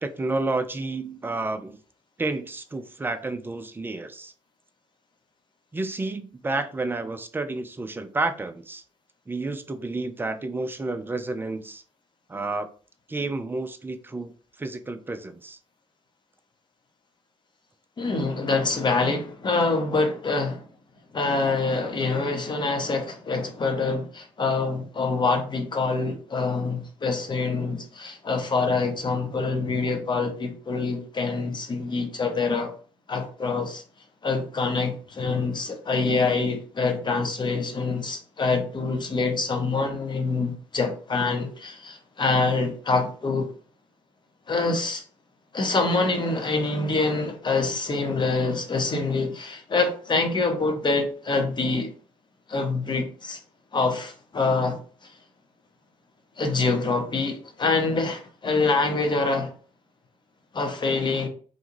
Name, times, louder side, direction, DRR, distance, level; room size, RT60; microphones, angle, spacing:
voice 1, 0.0-1.8 2.2-4.3 5.7-8.8 9.3-11.8 12.3-12.7 13.1-14.3 14.6-15.6, right 2 dB, 15° right, 0.4 m, -30 dB
voice 2, 18.0-20.6 21.1-32.7 33.1-33.8 34.2-43.5 44.5-45.0 45.5-51.9 52.5-53.4 53.7-55.1 56.4-59.5 60.5-61.3, left 3 dB, 30° left, 0.8 m, -25 dB
2.6 x 2.2 x 3.0 m
figure-of-eight pair, 50°, 16 cm